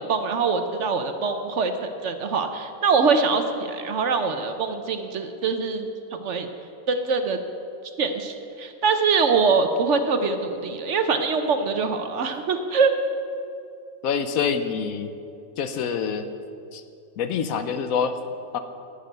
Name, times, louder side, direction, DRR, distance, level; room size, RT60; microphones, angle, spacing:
voice 1, 0.0-6.5 6.9-7.4 8.0-12.9, right 4 dB, 60° right, 7 dB, 1.0 m, -23 dB
voice 2, 14.0-15.1 15.6-16.3 16.7-16.8 17.2-18.1 18.5-18.6, left 6 dB, 75° left, 9 dB, 1.1 m, -26 dB
11.5 x 6.7 x 9.1 m, 2.6 s
omnidirectional pair, 1.6 m